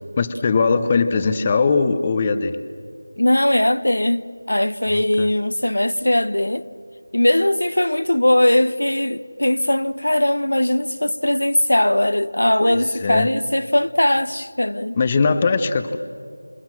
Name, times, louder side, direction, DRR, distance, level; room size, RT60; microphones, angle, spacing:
voice 1, 0.2-2.6 4.8-5.3 12.6-13.3 15.0-16.0, left 4 dB, 20° left, 0.8 m, -20 dB
voice 2, 3.2-6.6 7.1-15.0, left 1 dB, 75° left, 1.1 m, -19 dB
28.0 x 27.5 x 7.4 m
figure-of-eight pair, 170°, 0 cm